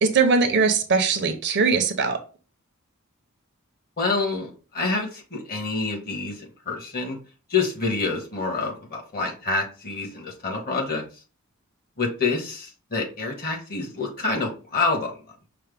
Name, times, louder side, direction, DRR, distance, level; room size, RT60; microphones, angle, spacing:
voice 1, 0.0-2.2, right 4 dB, 55° right, 7 dB, 0.7 m, -20 dB
voice 2, 4.0-6.3 6.7-7.2 7.5-11.0 12.0-15.1, left 3 dB, 45° left, 1 dB, 1.4 m, -27 dB
5.7 x 2.2 x 3.4 m, 0.35 s
head